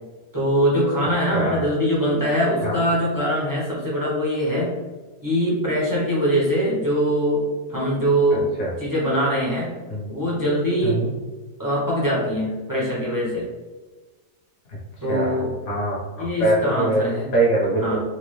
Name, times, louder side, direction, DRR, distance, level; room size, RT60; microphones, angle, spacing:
voice 1, 0.3-4.7 5.2-7.4 7.7-8.5 8.8-9.7 10.1-11.0 11.6-13.4 15.0-15.5 16.2-17.3 17.8-18.0, equal, 20° right, -6 dB, 0.6 m, -22 dB
voice 2, 15.1-17.0 17.3-18.0, right 2 dB, 60° left, -5 dB, 1.6 m, -23 dB
4.1 x 2.4 x 3.2 m, 1.3 s
omnidirectional pair, 1.8 m